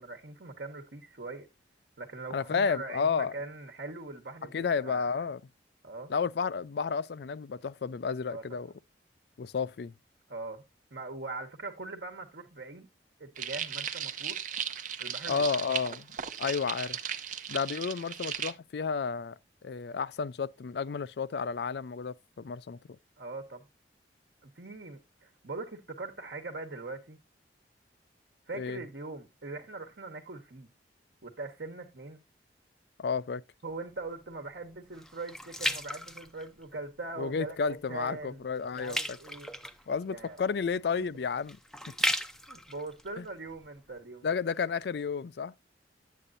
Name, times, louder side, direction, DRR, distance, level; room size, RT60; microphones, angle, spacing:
voice 1, 0.0-1.5 2.0-5.3 5.8-6.1 8.3-8.6 10.3-10.6 10.9-12.9 13.2-14.5 15.0-15.5 23.2-23.6 24.4-27.2 28.5-30.7 31.2-32.2 33.6-39.5 39.8-40.4 41.0-41.1 42.5-44.3, right 3 dB, 65° right, 1.2 m, -42 dB
voice 2, 2.3-3.4 4.5-5.4 6.1-8.7 9.4-9.9 15.3-16.1 16.4-17.0 17.5-19.3 19.6-22.8 28.6-28.8 33.0-33.4 37.2-39.2 39.9-41.6 43.2-43.3 44.2-45.5, left 5 dB, 65° left, 0.4 m, -31 dB
sound 1, 13.4-18.5, right 8 dB, 45° right, 0.6 m, -36 dB
sound 2, 33.7-37.0 37.4-37.8 38.1-44.0 44.5-44.6, equal, ahead, 0.5 m, -36 dB
9.9 x 8.4 x 2.6 m
head